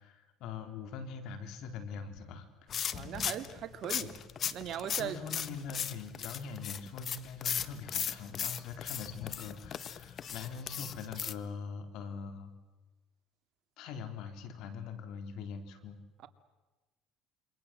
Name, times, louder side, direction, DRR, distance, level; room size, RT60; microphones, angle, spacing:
voice 1, 0.0-2.5 4.0-4.1 5.0-12.5 13.8-16.0, left 5 dB, 70° left, 8 dB, 4.0 m, -43 dB
sound 1, 2.7-11.3, left 8 dB, 45° left, 1.3 m, -38 dB
voice 2, 2.9-4.2 4.5-5.2, right 10 dB, 55° right, 9 dB, 2.3 m, -39 dB
27.5 x 25.0 x 7.8 m, 1.2 s
cardioid pair, 110°, 0 cm